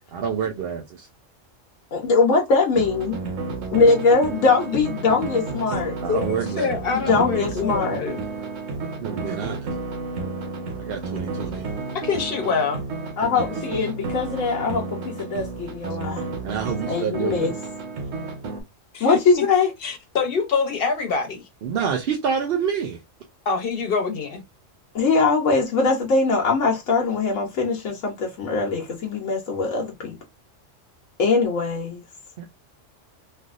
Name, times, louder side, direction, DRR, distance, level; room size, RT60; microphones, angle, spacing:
voice 1, 0.1-1.1 5.7-7.2 9.0-9.7 10.8-11.7 16.4-17.6 21.6-23.0 32.4-32.5, right 7 dB, 60° right, 0.7 m, -28 dB
voice 2, 1.9-3.2 3.7-5.9 7.1-8.0 13.2-16.3 16.9-17.5 19.0-19.7 24.9-30.2 31.2-32.0, left 4 dB, 90° left, 1.2 m, -21 dB
sound 1, 2.7-18.6, right 3 dB, 85° right, 1.3 m, -31 dB
voice 3, 6.1-8.2 11.9-12.8 18.9-19.5 19.8-21.4 23.4-24.4, left 5 dB, 55° left, 1.0 m, -25 dB
3.3 x 2.6 x 2.4 m
omnidirectional pair, 1.3 m